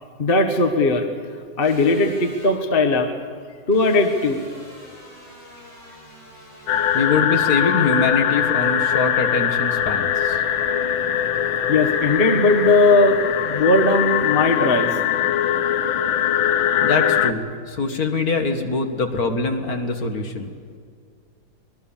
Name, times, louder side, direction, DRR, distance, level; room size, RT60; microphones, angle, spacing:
voice 1, 0.2-1.0 1.6-3.1 3.7-4.4 11.7-15.0, left 2 dB, 30° left, 6 dB, 1.5 m, -18 dB
sound 1, 1.6-2.5 3.7-7.1, left 1 dB, 70° left, 8.8 m, -45 dB
sound 2, 6.7-17.3, left 9 dB, 90° left, 1.7 m, -21 dB
voice 2, 6.9-10.4 16.8-20.5, left 4 dB, 50° left, 5 dB, 2.1 m, -23 dB
25.5 x 20.0 x 7.3 m, 2.1 s
omnidirectional pair, 2.1 m